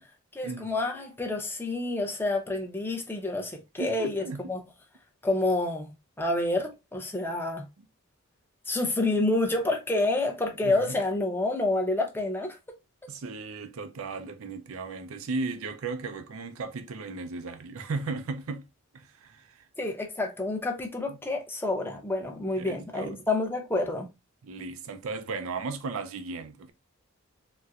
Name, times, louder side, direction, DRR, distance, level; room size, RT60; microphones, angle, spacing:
voice 1, 0.3-4.6 5.2-7.7 8.7-12.6 19.8-24.1, left 2 dB, 10° left, 0.7 m, -28 dB
voice 2, 3.8-4.5 10.6-11.0 13.1-18.7 18.9-19.7 21.1-21.2 22.6-23.2 24.4-26.7, right 3 dB, 70° right, 0.5 m, -36 dB
4.1 x 2.2 x 2.3 m
head